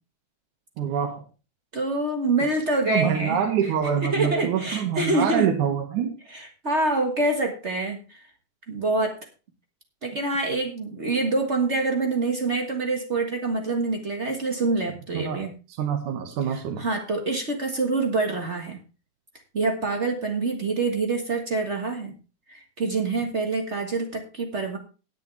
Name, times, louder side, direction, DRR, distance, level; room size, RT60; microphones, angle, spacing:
voice 1, 0.8-1.2 2.9-6.1 15.1-15.4 15.8-16.8, right 8 dB, 70° right, 3 dB, 3.0 m, -25 dB
voice 2, 1.7-3.4 4.0-5.5 6.3-8.2 8.7-9.2 10.0-15.5 16.5-18.8 19.5-22.1 22.5-24.8, right 3 dB, 45° right, 3 dB, 0.9 m, -26 dB
18.5 x 7.0 x 3.3 m, 0.33 s
omnidirectional pair, 3.8 m